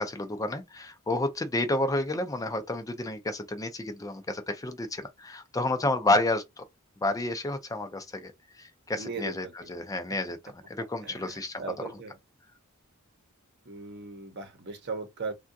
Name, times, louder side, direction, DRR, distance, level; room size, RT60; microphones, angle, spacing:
voice 1, 0.0-6.6 7.0-8.3 8.6-10.4 10.7-11.6, left 2 dB, 15° left, 0.4 m, -30 dB
voice 2, 9.0-9.7 11.0-12.2 13.7-15.3, right 4 dB, 55° right, 0.8 m, -38 dB
3.6 x 2.3 x 2.5 m
head